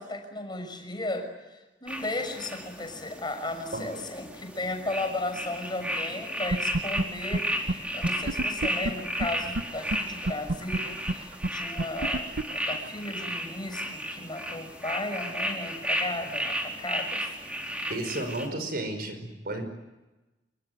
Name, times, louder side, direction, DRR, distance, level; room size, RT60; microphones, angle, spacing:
voice 1, 0.0-17.3, left 2 dB, 25° left, 6.3 m, -35 dB
sound 1, 1.9-18.5, equal, 5° right, 4.4 m, -34 dB
sound 2, 6.5-7.0 7.3-7.4 7.7-7.8 8.0-9.6 9.9-10.0 10.2-13.2, right 2 dB, 80° right, 1.0 m, -27 dB
voice 2, 17.9-19.6, right 1 dB, 55° right, 5.1 m, -33 dB
27.0 x 24.0 x 9.2 m
head